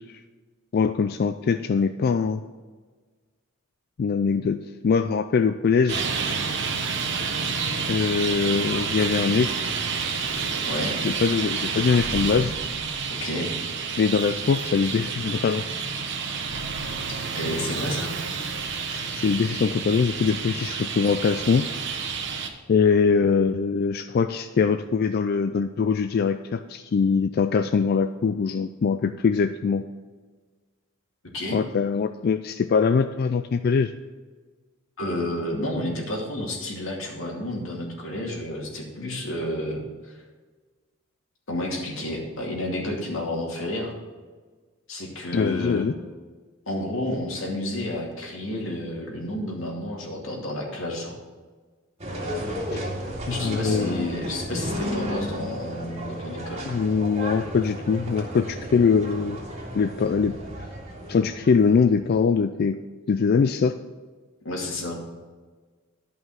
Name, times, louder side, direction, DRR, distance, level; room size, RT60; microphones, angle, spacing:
voice 1, 0.7-2.4 4.0-6.0 7.9-9.7 11.0-12.5 14.0-15.6 18.9-21.6 22.7-29.8 31.5-33.9 45.3-45.9 52.7-52.8 53.3-54.1 56.7-59.4 59.7-60.3 61.1-62.8 63.1-63.7, left 5 dB, 50° left, 9 dB, 0.3 m, -22 dB
Traffic noise roadway noise, 5.9-22.5, right 5 dB, 60° right, 1.1 m, -29 dB
voice 2, 10.6-11.0 13.2-13.5 17.0-18.1 31.3-31.6 35.0-40.2 41.5-43.9 44.9-45.9 46.7-51.2 53.3-56.6 64.4-65.0, left 1 dB, 90° left, -1 dB, 2.4 m, -31 dB
sound 1, 52.0-62.1, equal, 35° right, 2.3 m, -33 dB
11.5 x 5.5 x 5.7 m, 1.4 s
head